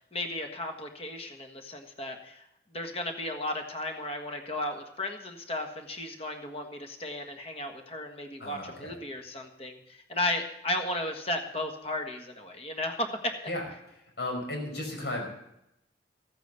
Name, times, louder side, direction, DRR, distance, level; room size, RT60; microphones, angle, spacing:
voice 1, 0.1-13.3, left 1 dB, 35° left, 4 dB, 1.6 m, -34 dB
voice 2, 8.4-9.0 13.5-13.6 14.2-15.3, left 1 dB, 80° left, 1 dB, 5.1 m, -34 dB
14.5 x 9.0 x 6.8 m, 0.81 s
head